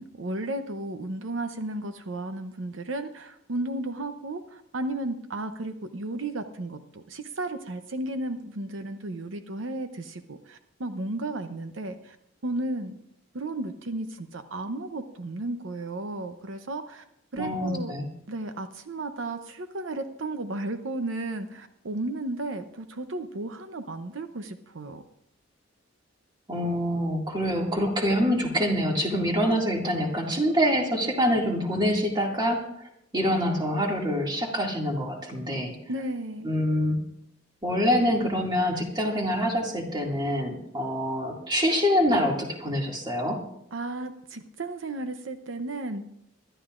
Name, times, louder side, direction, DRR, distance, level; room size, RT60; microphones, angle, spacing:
voice 1, 0.0-12.2 12.4-13.0 13.3-17.0 17.3-18.0 18.3-25.0 35.9-36.5 43.7-46.0, right 2 dB, 75° right, 8 dB, 0.8 m, -34 dB
voice 2, 17.4-18.0 26.5-35.7 36.4-37.0 37.6-43.4, equal, 20° right, 0 dB, 2.2 m, -25 dB
24.5 x 12.5 x 2.5 m, 0.76 s
head